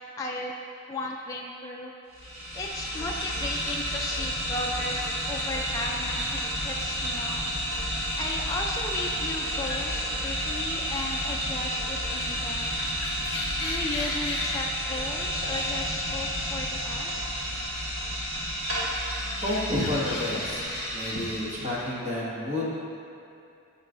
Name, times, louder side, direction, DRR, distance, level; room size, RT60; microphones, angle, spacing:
voice 1, 0.2-0.5 0.9-1.9 2.5-6.4 6.6-7.5 8.2-12.7 13.6-17.2, left 2 dB, 15° left, -2 dB, 0.4 m, -35 dB
sound 1, 2.1-21.8, equal, 65° right, 1.8 m, -31 dB
sound 2, 4.7-21.2, left 2 dB, 50° left, 1.3 m, -42 dB
voice 2, 19.4-20.6 20.9-22.7, left 1 dB, 30° right, -7 dB, 1.7 m, -30 dB
15.0 x 5.4 x 2.6 m, 2.6 s
head